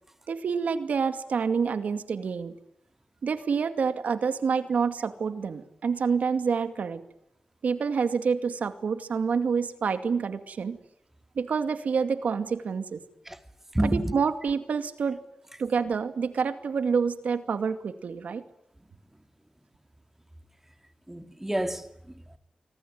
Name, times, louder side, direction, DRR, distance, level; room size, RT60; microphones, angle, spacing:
voice 1, 0.3-2.5 3.2-7.0 7.6-10.8 11.4-13.0 13.8-15.2 15.6-18.4, right 5 dB, 85° right, 2.3 m, -27 dB
voice 2, 13.7-14.1 21.1-22.4, right 1 dB, 10° right, 2.6 m, -29 dB
25.5 x 25.0 x 9.4 m
wide cardioid pair, 80°, 3 cm